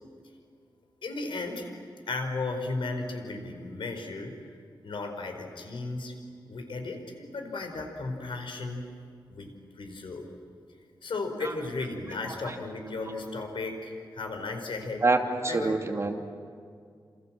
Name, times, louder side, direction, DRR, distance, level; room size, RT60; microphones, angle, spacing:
voice 1, 1.0-1.7 2.1-4.4 4.8-6.1 6.5-8.8 9.3-10.2 11.0-15.0 15.5-15.8, left 3 dB, 80° left, 5 dB, 4.7 m, -35 dB
voice 2, 15.0-16.3, right 3 dB, 35° right, 3 dB, 2.5 m, -26 dB
28.5 x 27.5 x 7.6 m, 2.2 s
wide cardioid pair, 110°, 9 cm